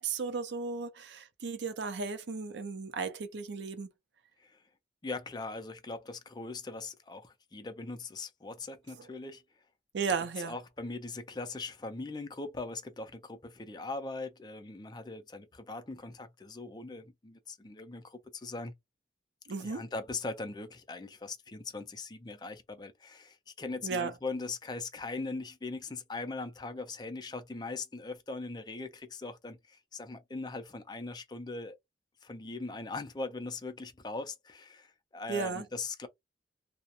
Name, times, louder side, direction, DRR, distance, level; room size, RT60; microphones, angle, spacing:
voice 1, 0.0-3.9 9.9-10.5 19.5-19.8 23.8-24.1 35.3-35.7, right 5 dB, 75° right, 0.5 m, -35 dB
voice 2, 5.0-9.4 10.4-18.7 19.6-31.8 32.2-36.1, left 3 dB, 25° left, 0.4 m, -40 dB
2.4 x 2.0 x 2.8 m
head